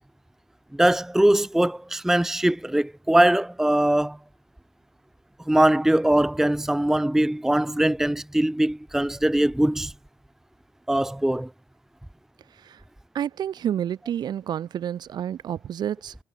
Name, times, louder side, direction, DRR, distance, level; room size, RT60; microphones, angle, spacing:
voice 1, 0.7-4.2 5.5-9.9 10.9-11.5, right 1 dB, 5° right, 0.7 m, -21 dB
voice 2, 12.5-12.8 13.1-16.2, right 10 dB, 65° right, 2.7 m, -29 dB
supercardioid pair, 60°, 8 cm